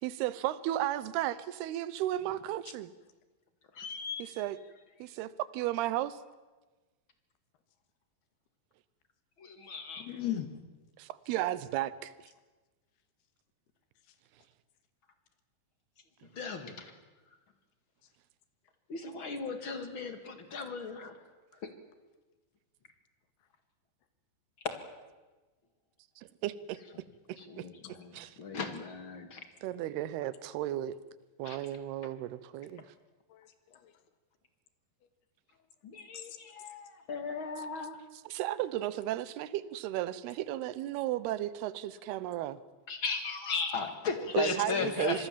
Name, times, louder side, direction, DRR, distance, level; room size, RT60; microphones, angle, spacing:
voice 1, 0.0-2.9 4.2-4.6 5.0-6.2 11.0-12.3 26.2-28.4 29.6-31.0 31.4-32.9 38.1-42.6 44.3-45.3, right 13 dB, 85° right, 17 dB, 2.9 m, -34 dB
voice 2, 3.7-4.2 9.4-10.1 16.3-16.9 18.9-21.1 24.6-24.8 27.4-29.4 31.5-31.6 35.8-38.0 42.9-45.3, left 4 dB, 45° left, 8 dB, 2.0 m, -36 dB
voice 3, 10.0-10.5 33.3-33.9 36.1-36.3 44.2-45.2, left 11 dB, 85° left, 10 dB, 3.7 m, -39 dB
26.0 x 21.5 x 7.4 m, 1.2 s
omnidirectional pair, 4.5 m